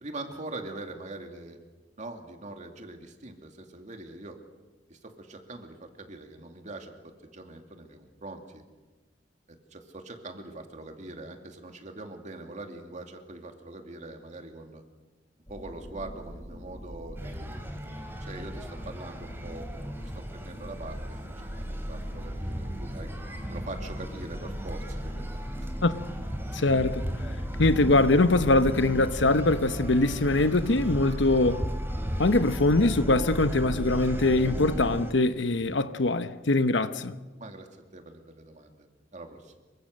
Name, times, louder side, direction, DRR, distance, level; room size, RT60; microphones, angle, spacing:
voice 1, 0.0-1.6 2.0-4.4 4.9-8.6 9.5-14.8 15.5-17.6 18.2-19.7 20.0-21.2 21.6-23.1 23.5-25.3 25.6-25.7 37.4-39.5, right 2 dB, 40° right, 2.5 m, -43 dB
sound 1, 15.5-35.0, equal, 25° left, 4.3 m, -38 dB
sound 2, 17.2-35.1, equal, 15° right, 3.0 m, -37 dB
voice 2, 26.5-27.0 27.6-31.7 32.2-37.2, left 2 dB, 75° left, 1.0 m, -23 dB
27.0 x 24.5 x 6.5 m
head